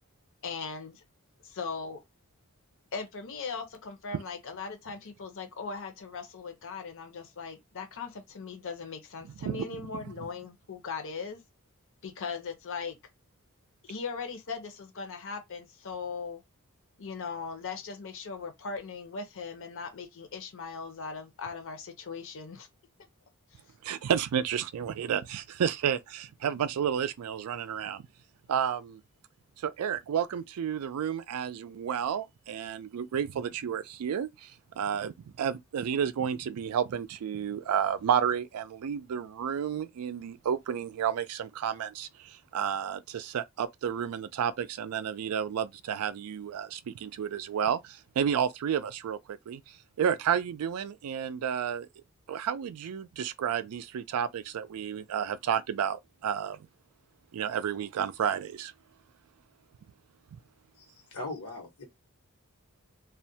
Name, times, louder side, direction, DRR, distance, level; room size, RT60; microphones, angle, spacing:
voice 1, 0.4-1.0 1.4-2.0 2.9-11.4 12.0-13.0 13.8-16.4 17.0-22.7 23.5-23.6, left 5 dB, 60° left, 0.7 m, -39 dB
voice 2, 23.8-28.1 28.5-29.0 29.6-34.5 34.8-49.6 50.0-51.9 52.3-56.6 57.3-58.7, right 8 dB, 80° right, 0.3 m, -31 dB
voice 3, 61.1-61.8, left 2 dB, 90° left, 1.1 m, -39 dB
2.4 x 2.1 x 2.7 m
head